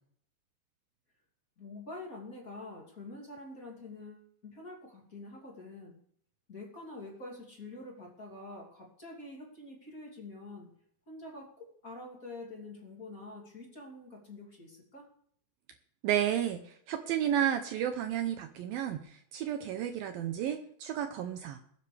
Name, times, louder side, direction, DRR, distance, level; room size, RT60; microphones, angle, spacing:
voice 1, 1.6-6.0 6.5-10.7 11.1-15.1, left 2 dB, 25° left, -1 dB, 2.5 m, -46 dB
voice 2, 16.0-21.6, right 10 dB, 80° right, 7 dB, 2.1 m, -32 dB
21.5 x 9.9 x 3.4 m, 0.64 s
omnidirectional pair, 5.0 m